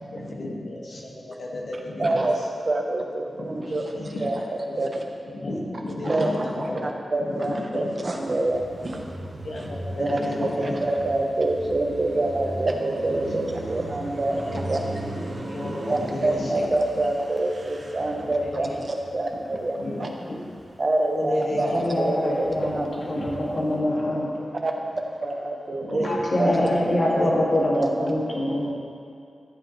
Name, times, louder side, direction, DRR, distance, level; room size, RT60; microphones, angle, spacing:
voice 1, 0.1-2.4 3.3-4.3 4.7-6.9 7.2-7.9 9.4-10.8 13.3-13.4 14.3-14.6 15.4-16.6 18.4-18.8 19.5-20.4 21.1-21.7 22.3-22.4 25.9-26.8 27.1-27.3 28.4-28.5, left 1 dB, 70° left, -3 dB, 1.9 m, -33 dB
voice 2, 2.0-4.4 4.8-4.9 6.0-6.5 6.8-9.1 10.0-10.2 10.6-14.8 15.9-20.1 20.8-22.9 24.6-24.7 25.2-26.1 26.4-26.5 27.7-28.1, right 2 dB, 35° right, 1 dB, 1.0 m, -26 dB
Car passing by, 8.4-20.9 21.3-23.8, right 1 dB, 55° right, 1.8 m, -37 dB
voice 3, 21.7-24.3 26.0-28.7, left 1 dB, 45° left, -5 dB, 2.3 m, -24 dB
14.5 x 8.1 x 3.3 m, 2.4 s
wide cardioid pair, 165°, 0 cm